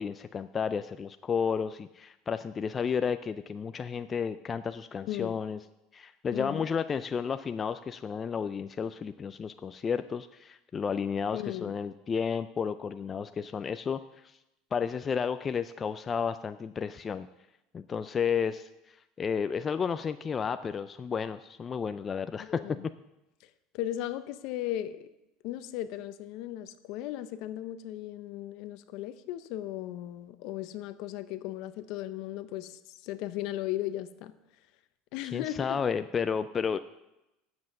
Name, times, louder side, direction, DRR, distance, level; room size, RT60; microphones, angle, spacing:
voice 1, 0.0-5.6 5.9-14.4 14.7-17.3 17.7-22.6 35.2-36.8, left 6 dB, 25° left, 10 dB, 0.3 m, -32 dB
voice 2, 5.1-5.4 6.3-6.7 11.3-11.7 22.4-22.9 23.7-25.1 25.4-34.3 35.1-35.8, left 13 dB, 60° left, 12 dB, 0.7 m, -36 dB
9.6 x 7.7 x 6.4 m, 0.94 s
supercardioid pair, 140°, 0 cm